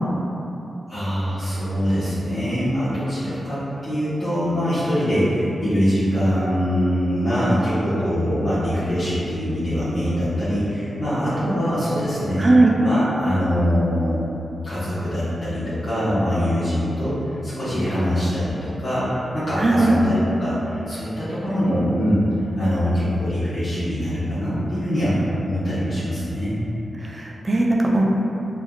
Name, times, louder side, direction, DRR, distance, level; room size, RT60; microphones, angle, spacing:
voice 1, 0.9-12.5 12.8-14.2 14.6-22.2 22.6-26.6, equal, 65° left, -15 dB, 1.0 m, -23 dB
voice 2, 12.4-12.7 19.6-19.9 27.0-28.0, right 2 dB, 35° right, -2 dB, 0.4 m, -18 dB
3.5 x 2.3 x 2.3 m, 3.0 s
cardioid pair, 55°, 0 cm